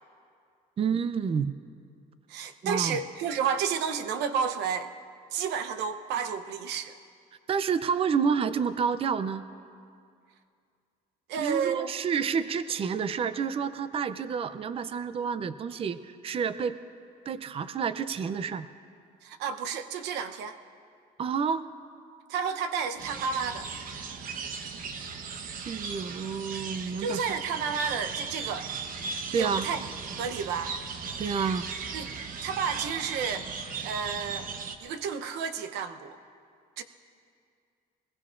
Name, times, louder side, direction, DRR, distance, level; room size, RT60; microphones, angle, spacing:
voice 1, 0.8-1.5 2.6-3.0 7.5-9.4 11.3-16.8 17.3-18.7 21.2-21.6 25.6-27.4 29.3-29.7 31.2-31.7, right 6 dB, 35° right, 13 dB, 0.5 m, -29 dB
voice 2, 2.3-4.9 5.3-6.9 11.3-11.9 19.2-20.6 22.3-23.7 27.0-28.7 29.3-29.9 30.2-30.8 31.9-32.1 32.4-33.5 33.8-34.5 34.8-36.2 36.8-36.9, right 6 dB, 90° right, 9 dB, 0.8 m, -31 dB
sound 1, 23.0-34.8, right 5 dB, 55° right, 1.0 m, -37 dB
21.5 x 20.5 x 2.5 m, 2.3 s
cardioid pair, 110°, 17 cm